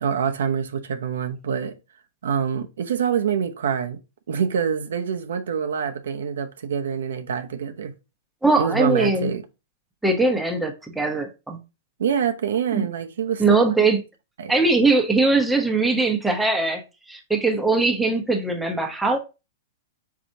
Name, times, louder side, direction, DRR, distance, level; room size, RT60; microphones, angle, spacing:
voice 1, 0.0-1.8 2.2-4.0 4.3-7.9 8.6-9.4 12.0-13.4 14.4-14.5, right 7 dB, 90° right, 0.7 m, -25 dB
voice 2, 8.4-9.3 10.0-11.6 12.7-12.9 13.4-14.0 14.5-16.8 17.1-19.2, right 3 dB, 5° right, 0.7 m, -21 dB
4.8 x 4.1 x 2.7 m
supercardioid pair, 160°, 0 cm